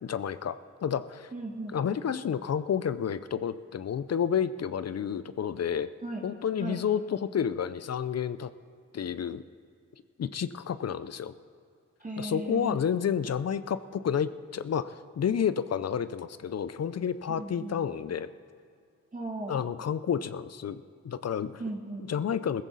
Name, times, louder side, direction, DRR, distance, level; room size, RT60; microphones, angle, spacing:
voice 1, 0.0-1.3 1.7-5.9 6.2-8.5 8.9-9.4 10.2-11.3 12.2-18.3 19.5-21.5 22.1-22.6, left 8 dB, 55° left, 14 dB, 0.6 m, -30 dB
voice 2, 1.3-1.8 6.0-6.2 6.6-6.8 12.0-12.8 17.3-17.8 19.1-19.6 21.6-22.1, right 2 dB, 25° right, -1 dB, 2.0 m, -36 dB
16.0 x 14.5 x 4.1 m, 2.4 s
cardioid pair, 60°, 30 cm